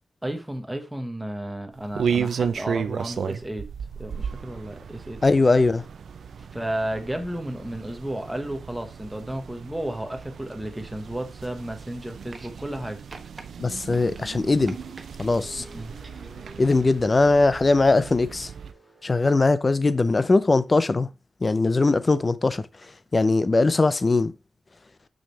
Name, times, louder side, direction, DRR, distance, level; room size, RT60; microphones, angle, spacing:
voice 1, 0.2-3.7 4.0-5.4 6.5-13.0 15.6-15.9, right 1 dB, 5° right, 1.2 m, -33 dB
sound 1, 1.7-18.7, right 7 dB, 80° right, 0.5 m, -34 dB
voice 2, 5.2-5.8 13.6-14.8 15.2-15.6 16.6-18.5 19.0-21.1 21.4-22.7 23.1-24.3, left 3 dB, 30° left, 0.5 m, -20 dB
sound 2, 12.3-12.8 13.1-13.5 13.9-15.3 15.7-16.3 17.4-17.5, right 3 dB, 35° right, 1.1 m, -47 dB
Car, 14.1-19.6, equal, 10° left, 1.9 m, -49 dB
6.4 x 6.2 x 3.2 m
wide cardioid pair, 115°, 0 cm